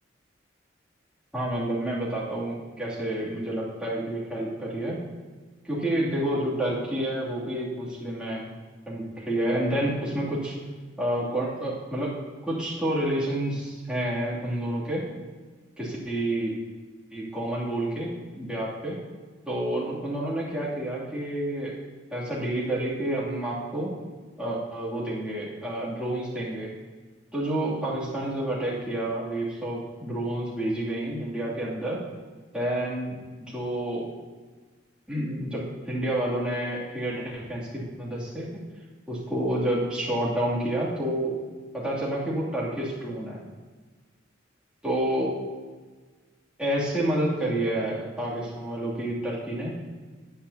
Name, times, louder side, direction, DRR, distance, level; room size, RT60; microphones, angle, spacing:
voice 1, 1.3-5.0 5.6-8.5 8.9-10.6 11.0-12.1 12.4-15.0 15.8-16.5 17.1-19.0 19.5-21.7 22.1-23.9 24.4-26.7 27.3-32.0 32.5-34.1 35.1-38.5 39.1-41.4 41.7-43.4 44.8-45.4 46.6-49.7, right 1 dB, 5° right, -8 dB, 2.7 m, -29 dB
15.5 x 9.0 x 2.8 m, 1.4 s
head